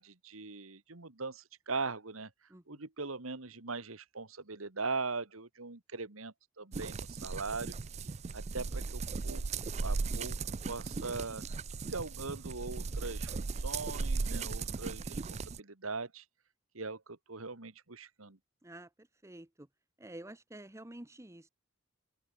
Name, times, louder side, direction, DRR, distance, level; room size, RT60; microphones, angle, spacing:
voice 1, 0.0-2.3 2.7-7.7 8.3-9.4 9.8-10.4 10.7-11.5 11.9-15.2 15.5-16.2 16.7-18.4, right 4 dB, 80° right, 2.0 m, -40 dB
voice 2, 2.5-2.8 18.6-18.9 19.2-19.7 20.0-21.5, right 1 dB, 15° right, 1.1 m, -49 dB
sound 1, 6.7-15.6, right 4 dB, 30° right, 0.4 m, -37 dB
open air
head